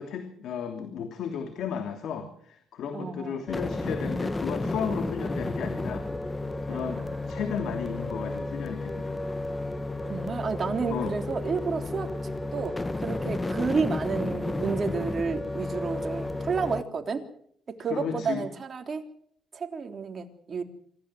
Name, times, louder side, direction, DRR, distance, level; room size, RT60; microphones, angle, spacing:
voice 1, 0.0-6.0 6.6-9.2 10.9-11.2 17.9-18.5, left 7 dB, 75° left, 6 dB, 3.0 m, -34 dB
voice 2, 2.9-3.5 6.7-7.3 10.0-17.2 17.7-19.1 19.5-20.6, right 5 dB, 40° right, 4 dB, 3.5 m, -31 dB
sound 1, 3.5-16.8, left 2 dB, 20° left, 1.3 m, -32 dB
26.5 x 15.0 x 7.8 m, 0.65 s
cardioid pair, 90°, 0 cm